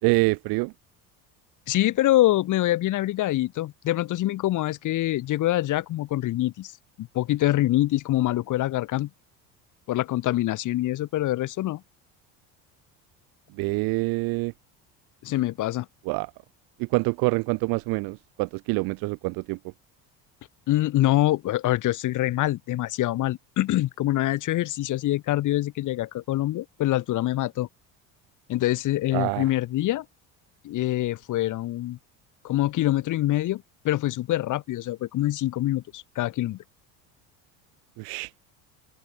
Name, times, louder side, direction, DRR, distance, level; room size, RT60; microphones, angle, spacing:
voice 1, 0.0-0.7 13.5-14.5 16.0-16.3 16.8-19.7 29.1-29.5 38.0-38.3, right 27 dB, 80° right, 1.7 m, -26 dB
voice 2, 1.7-6.7 7.0-9.1 9.9-11.8 15.2-15.9 20.7-27.7 28.5-30.0 30.6-32.0 32.4-36.6, left 15 dB, 55° left, 2.5 m, -25 dB
open air
cardioid pair, 120°, 35 cm